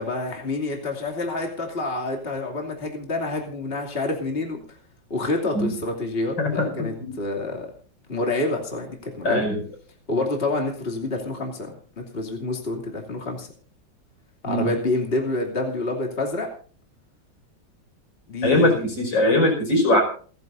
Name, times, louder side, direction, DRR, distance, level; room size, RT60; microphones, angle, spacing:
voice 1, 0.0-4.6 5.1-7.7 8.1-9.4 10.1-11.7 12.0-13.5 14.4-16.5 18.3-18.9, left 2 dB, 30° left, 1 dB, 3.0 m, -27 dB
voice 2, 6.4-7.1 9.2-9.6 14.4-14.7 18.4-20.0, left 1 dB, 85° left, 2 dB, 6.1 m, -21 dB
29.0 x 10.5 x 2.6 m, 0.42 s
omnidirectional pair, 2.0 m